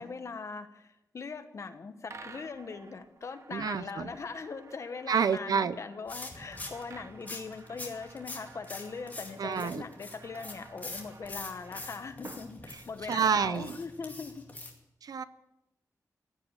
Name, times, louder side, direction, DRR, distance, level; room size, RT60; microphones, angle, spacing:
voice 1, 0.0-14.4, left 4 dB, 50° left, 8 dB, 1.2 m, -41 dB
sound 1, 2.1-13.3, right 4 dB, 50° right, 0.9 m, -53 dB
voice 2, 3.5-4.1 5.1-5.8 9.4-9.8 13.1-13.8 15.0-15.2, right 7 dB, 85° right, 14 dB, 0.7 m, -28 dB
sound 2, 6.1-14.7, left 2 dB, 25° left, 2.3 m, -45 dB
15.5 x 9.0 x 9.1 m, 0.92 s
wide cardioid pair, 175°, 6 cm